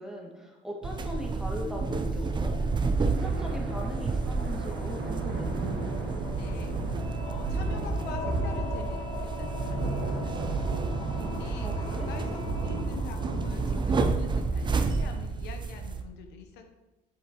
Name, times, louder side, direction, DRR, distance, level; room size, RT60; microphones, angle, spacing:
voice 1, 0.0-5.5 11.6-12.1, equal, 5° right, -1 dB, 1.8 m, -40 dB
sound 1, 0.8-16.0, right 4 dB, 25° right, 0.6 m, -32 dB
sound 2, 1.0-14.0, left 5 dB, 35° left, 0.9 m, -43 dB
sound 3, 2.9-15.1, right 3 dB, 65° right, 1.7 m, -33 dB
voice 2, 6.0-10.7 11.2-16.7, left 5 dB, 80° left, 5 dB, 0.9 m, -45 dB
7.7 x 7.5 x 3.0 m, 1.0 s
cardioid pair, 110°, 17 cm